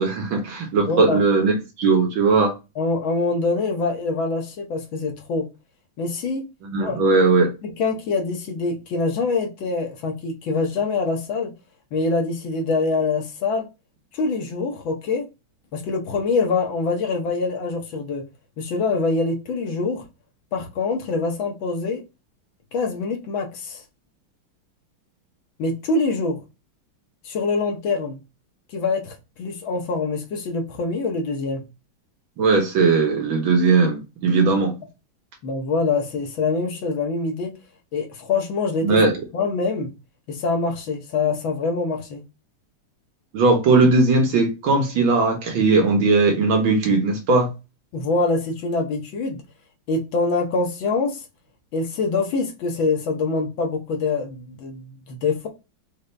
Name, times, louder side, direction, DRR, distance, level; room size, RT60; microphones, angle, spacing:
voice 1, 0.0-2.5 6.6-7.5 32.4-34.8 38.8-39.2 43.3-47.5, right 3 dB, 70° right, 1.9 m, -18 dB
voice 2, 0.9-1.2 2.8-5.5 6.0-6.4 6.8-7.0 7.6-11.5 11.9-13.7 14.1-15.2 15.7-18.2 18.6-20.0 20.5-22.0 22.7-23.8 25.6-26.4 27.2-28.2 28.7-31.6 35.4-37.5 37.9-39.0 39.3-39.9 40.3-42.2 47.9-49.4 49.9-51.2 51.7-55.5, left 3 dB, 70° left, 1.7 m, -24 dB
5.2 x 2.8 x 3.3 m
omnidirectional pair, 2.3 m